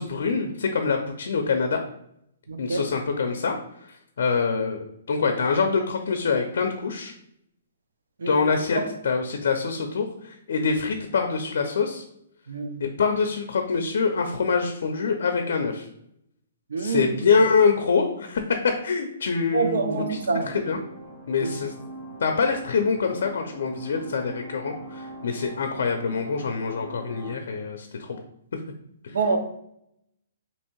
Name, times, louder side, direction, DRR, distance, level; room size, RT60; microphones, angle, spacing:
voice 1, 0.0-1.8 2.6-3.6 3.9-7.1 8.3-8.8 9.0-12.0 12.8-15.9 16.8-20.2 20.5-20.8 21.3-21.7 22.2-28.2 28.5-28.6 29.0-29.1, left 5 dB, 65° left, 5 dB, 0.5 m, -25 dB
voice 2, 2.5-2.9 8.2-8.5 12.5-12.8 16.7-17.1 19.5-20.5 21.4-21.5 29.1-29.4, right 4 dB, 90° right, 6 dB, 0.6 m, -26 dB
sound 1, 19.8-27.3, right 2 dB, 45° right, 1.5 m, -42 dB
2.9 x 2.7 x 4.4 m, 0.75 s
hypercardioid pair, 170°, 0 cm